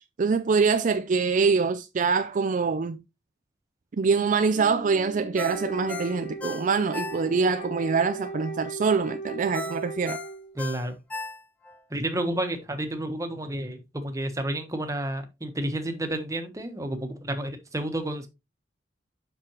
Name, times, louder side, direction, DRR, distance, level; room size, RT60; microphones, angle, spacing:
voice 1, 0.2-3.0 4.0-10.2, right 5 dB, 45° right, 0.4 m, -24 dB
Bass guitar, 4.5-8.0, right 2 dB, 70° left, 1.6 m, -46 dB
Wind instrument woodwind instrument, 5.4-10.6, right 3 dB, 40° left, 2.7 m, -37 dB
Ringtone, 5.4-7.6 8.0-8.1 9.5-11.8 12.2-12.3, left 2 dB, 10° left, 0.9 m, -36 dB
voice 2, 10.5-11.0 11.9-18.3, right 1 dB, 20° right, 1.2 m, -31 dB
7.4 x 6.0 x 3.0 m
head